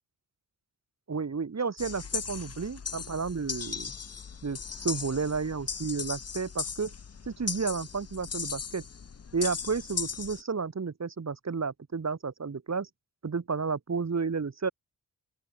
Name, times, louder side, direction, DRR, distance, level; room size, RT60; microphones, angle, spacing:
voice 1, 1.1-3.9 4.4-6.9 7.3-8.8 9.3-12.9 13.2-14.7, right 5 dB, 50° right, 2.2 m, -32 dB
sound 1, 1.8-10.4, left 6 dB, 45° left, 1.0 m, -37 dB
open air
wide cardioid pair, 120°, 35 cm